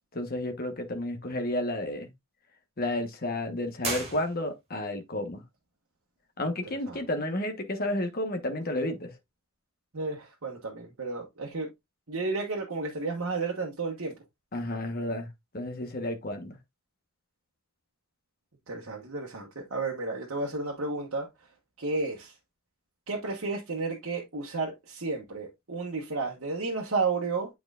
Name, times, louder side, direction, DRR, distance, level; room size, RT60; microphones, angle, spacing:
voice 1, 0.1-2.1 2.8-5.4 6.4-9.1 14.5-15.3 15.5-16.6, left 1 dB, 40° left, 1.2 m, -31 dB
sound 1, 3.8-4.9, right 3 dB, 30° right, 3.5 m, -36 dB
voice 2, 6.6-7.0 9.9-11.7 12.1-14.1 18.7-21.3 21.8-22.3 23.1-27.5, right 3 dB, 65° right, 1.3 m, -32 dB
8.7 x 4.8 x 2.4 m
head